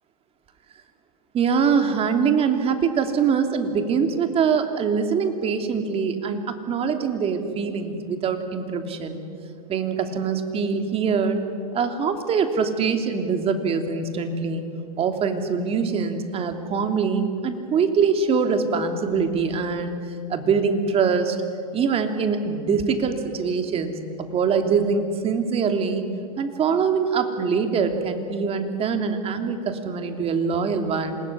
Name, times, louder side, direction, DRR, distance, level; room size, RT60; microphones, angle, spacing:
voice 1, 1.3-9.2 9.7-11.4 11.7-14.6 15.0-20.0 20.3-21.4 21.7-26.0 26.4-31.2, right 5 dB, 30° right, 6 dB, 3.0 m, -23 dB
27.0 x 20.0 x 9.9 m, 2.4 s
hypercardioid pair, 115°, 20 cm